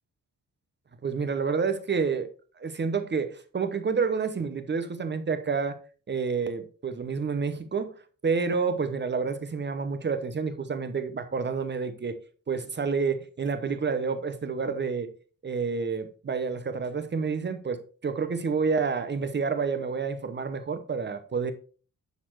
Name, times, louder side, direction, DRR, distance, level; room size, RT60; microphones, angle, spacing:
voice 1, 1.0-2.3 2.6-5.8 6.1-7.9 8.2-12.2 12.5-15.1 15.4-21.5, right 5 dB, 35° right, 0.9 m, -29 dB
10.5 x 4.2 x 4.6 m
wide cardioid pair, 140°, 33 cm